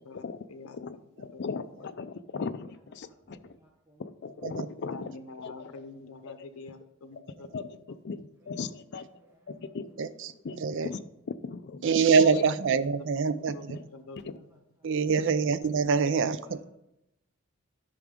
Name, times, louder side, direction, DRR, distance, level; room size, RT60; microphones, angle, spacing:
voice 1, 0.0-0.8 1.3-1.4 4.9-8.0 12.8-13.7 13.9-14.3 14.8-14.9, left 3 dB, 85° left, 8 dB, 0.7 m, -46 dB
voice 2, 0.6-3.6 4.0-5.1 5.4-5.7 6.3-6.4 7.5-7.7 8.0-9.1 9.5-9.9 10.4-11.8 12.2-12.5 13.7-13.8 15.2-15.3 16.1-16.2, left 4 dB, 55° left, 11 dB, 0.4 m, -38 dB
voice 3, 2.6-4.4 5.0-5.1 8.4-8.6 9.1-10.0 10.3-10.4 12.0-12.1 13.0-13.5 14.2-14.9 16.4-16.6, right 1 dB, 10° right, 0 dB, 0.8 m, -62 dB
voice 4, 11.8-13.8 14.8-16.6, right 5 dB, 60° right, 14 dB, 0.5 m, -25 dB
10.5 x 5.9 x 3.6 m, 0.84 s
head